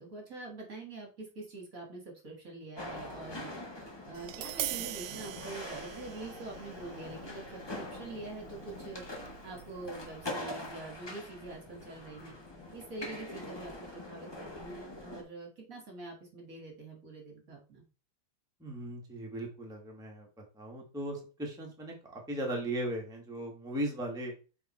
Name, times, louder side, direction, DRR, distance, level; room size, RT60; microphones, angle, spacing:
voice 1, 0.0-3.5 4.1-9.0 9.4-12.3 12.7-17.8, right 2 dB, 45° right, 1 dB, 2.0 m, -45 dB
sound 1, 2.8-15.2, left 1 dB, 15° left, 1.0 m, -44 dB
Tap, 4.1-10.3, right 12 dB, 85° right, 1.3 m, -43 dB
voice 2, 18.6-24.3, right 1 dB, ahead, 0 dB, 1.4 m, -37 dB
7.0 x 3.6 x 4.3 m, 0.34 s
omnidirectional pair, 2.1 m